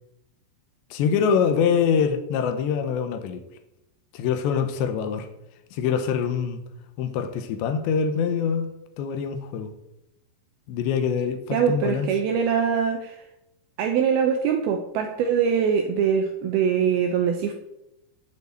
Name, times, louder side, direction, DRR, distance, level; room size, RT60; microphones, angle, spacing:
voice 1, 0.9-3.4 4.1-5.3 5.7-6.6 7.0-8.7 9.0-9.7 10.7-12.1, left 7 dB, 80° left, 3.0 m, -24 dB
voice 2, 11.5-13.2 13.8-17.5, right 7 dB, 80° right, 2.2 m, -23 dB
9.2 x 5.3 x 7.9 m
omnidirectional pair, 5.2 m